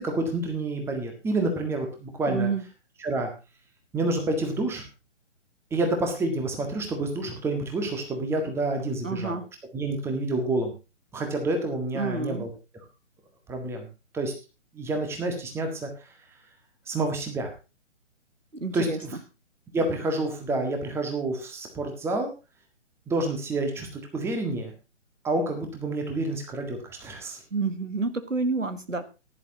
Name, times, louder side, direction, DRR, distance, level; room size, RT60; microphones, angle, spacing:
voice 1, 0.0-2.5 3.0-3.3 3.9-4.8 5.7-9.4 9.7-10.7 11.1-12.5 13.5-13.9 14.1-14.3 14.7-15.9 16.9-17.5 18.7-19.2 19.7-22.3 23.1-24.7 25.2-27.4, right 2 dB, 5° right, 4 dB, 1.7 m, -28 dB
voice 2, 2.3-2.6 9.0-9.4 11.9-12.4 18.5-19.0 27.5-29.1, right 4 dB, 90° right, 12 dB, 1.4 m, -29 dB
16.0 x 10.5 x 2.8 m, 0.29 s
figure-of-eight pair, 135°, 37 cm